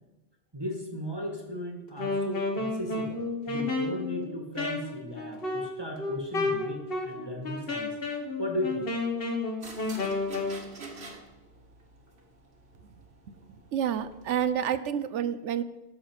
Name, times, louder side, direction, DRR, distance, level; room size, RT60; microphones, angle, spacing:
voice 1, 0.5-8.9, equal, 20° right, 1 dB, 1.5 m, -36 dB
Wind instrument woodwind instrument, 1.9-10.6, left 3 dB, 50° left, 1.6 m, -32 dB
sound 1, 9.6-14.6, right 3 dB, 60° right, 1.8 m, -47 dB
voice 2, 13.7-15.6, right 9 dB, 80° right, 13 dB, 1.0 m, -29 dB
12.0 x 6.7 x 4.8 m, 1.1 s
omnidirectional pair, 1.2 m